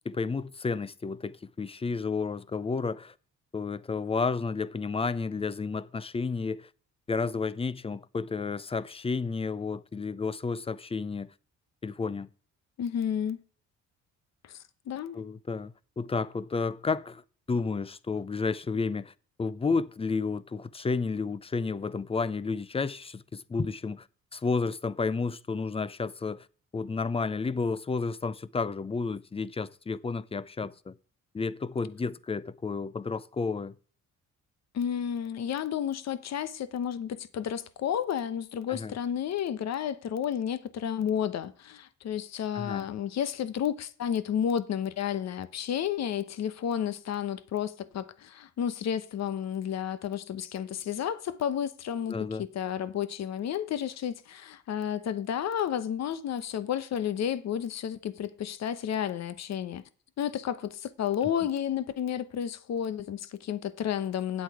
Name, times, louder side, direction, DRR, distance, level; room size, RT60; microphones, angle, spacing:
voice 1, 0.0-3.1 3.5-6.7 7.1-11.3 11.8-12.3 15.1-17.2 17.5-19.1 19.4-24.1 24.3-26.5 26.7-30.9 31.3-33.8 38.7-39.0 42.5-42.9 52.1-52.5, left 4 dB, 20° left, 0.5 m, -31 dB
voice 2, 12.8-13.4 14.5-14.6 14.9-15.2 34.7-59.8 60.2-64.4, left 9 dB, 60° left, 1.0 m, -31 dB
9.5 x 8.1 x 4.8 m
cardioid pair, 90°, 30 cm